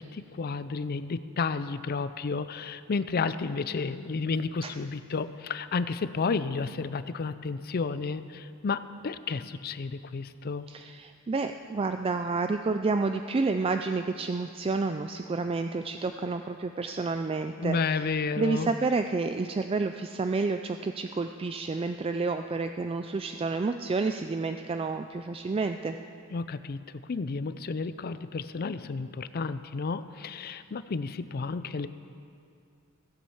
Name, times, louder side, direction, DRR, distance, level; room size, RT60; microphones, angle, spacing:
voice 1, 0.0-10.6 17.6-18.7 26.3-26.8 27.1-31.9, left 4 dB, 45° left, 13 dB, 0.5 m, -31 dB
voice 2, 10.7-26.0, right 3 dB, 25° right, 7 dB, 0.3 m, -30 dB
15.5 x 8.5 x 7.1 m, 2.4 s
head